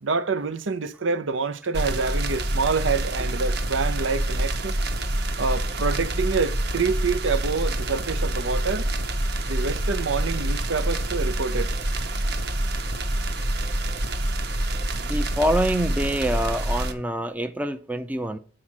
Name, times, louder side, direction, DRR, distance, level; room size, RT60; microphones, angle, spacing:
voice 1, 0.0-4.7 5.4-8.9 9.5-11.7, right 4 dB, 75° right, 0.7 m, -27 dB
sound 1, 1.7-16.9, right 1 dB, 55° right, 1.1 m, -26 dB
voice 2, 15.0-18.4, right 1 dB, 10° right, 0.5 m, -26 dB
8.7 x 4.9 x 6.1 m
head